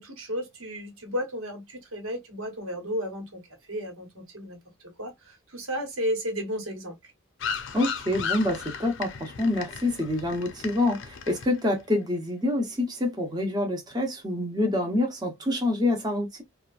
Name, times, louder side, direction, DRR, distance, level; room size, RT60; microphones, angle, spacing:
voice 1, 0.0-3.4 3.7-4.6 5.0-6.9, equal, 85° right, 1.2 m, -33 dB
sound 1, 7.4-11.8, left 6 dB, 60° left, 0.5 m, -35 dB
voice 2, 7.7-16.4, left 2 dB, 20° right, 0.8 m, -27 dB
2.8 x 2.3 x 2.4 m
head